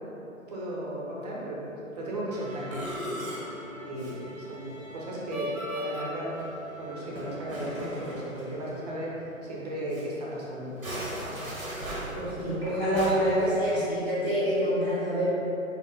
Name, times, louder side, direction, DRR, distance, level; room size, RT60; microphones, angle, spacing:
voice 1, 0.5-9.1 9.4-10.7 11.3-11.6, right 1 dB, 30° right, -5 dB, 0.8 m, -36 dB
Musical instrument, 2.3-9.2 9.5-9.6 9.9-10.0 10.6-13.1, equal, 90° right, 1.4 m, -38 dB
voice 2, 12.1-15.2, equal, 5° left, -19 dB, 0.5 m, -26 dB
4.4 x 3.0 x 3.7 m, 2.9 s
figure-of-eight pair, 135°, 41 cm